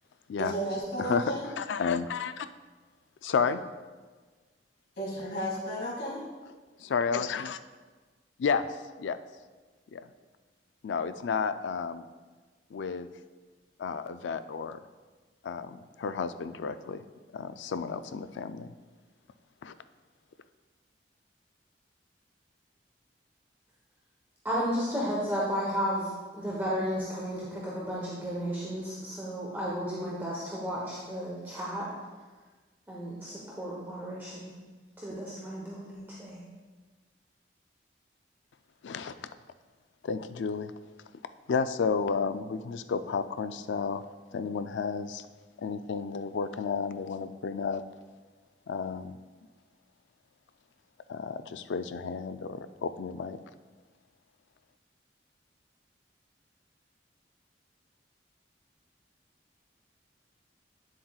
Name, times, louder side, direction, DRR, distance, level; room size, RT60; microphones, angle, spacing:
voice 1, 0.4-1.5 5.0-6.2, right 1 dB, 60° left, -4 dB, 2.3 m, -33 dB
voice 2, 1.0-2.5 3.2-3.6 6.8-7.6 8.4-8.7 9.0-9.2 9.9-10.0 10.8-12.0 12.7-13.1 13.8-14.8 15.4-17.0 17.3-18.7 19.6-19.7 38.8-39.3 40.0-40.7 41.5-44.1 44.3-45.3 45.6-47.8 48.7-49.2 51.1-53.4, left 5 dB, 90° left, 11 dB, 0.4 m, -32 dB
voice 3, 24.4-31.9 32.9-34.5 35.0-36.4, equal, 10° right, -6 dB, 1.0 m, -33 dB
9.3 x 7.4 x 2.4 m, 1.4 s
head